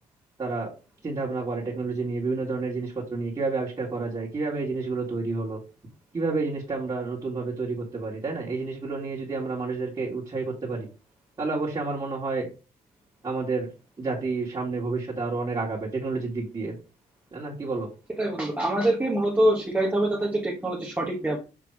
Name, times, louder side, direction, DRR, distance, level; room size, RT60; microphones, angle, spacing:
voice 1, 0.4-0.7 1.0-5.6 6.1-10.9 11.4-12.5 13.2-13.7 14.0-16.8 17.3-17.9, right 3 dB, 25° right, -7 dB, 2.0 m, -30 dB
voice 2, 18.2-21.4, right 1 dB, 10° right, 0 dB, 1.1 m, -24 dB
6.2 x 3.4 x 4.7 m, 0.33 s
cardioid pair, 110°, 17 cm